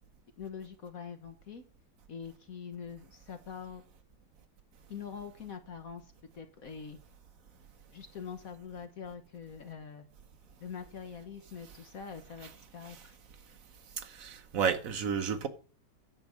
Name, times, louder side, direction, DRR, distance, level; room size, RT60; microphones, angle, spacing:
voice 1, 0.4-1.6 2.1-3.8 4.9-7.0 7.9-10.1 10.6-13.1, left 7 dB, 55° left, 1.3 m, -44 dB
voice 2, 14.0-15.5, right 7 dB, 55° right, 1.3 m, -32 dB
9.9 x 5.2 x 7.5 m
omnidirectional pair, 2.0 m